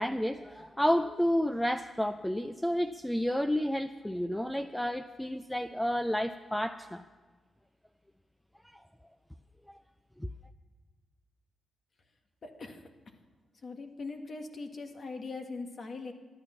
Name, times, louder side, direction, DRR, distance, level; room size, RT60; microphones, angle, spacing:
voice 1, 0.0-7.0 8.7-8.8 10.2-10.3, equal, 5° left, 0.5 m, -30 dB
voice 2, 12.4-12.8 13.6-16.1, left 3 dB, 55° left, 1.7 m, -41 dB
13.5 x 11.0 x 5.8 m
cardioid pair, 65°, 0 cm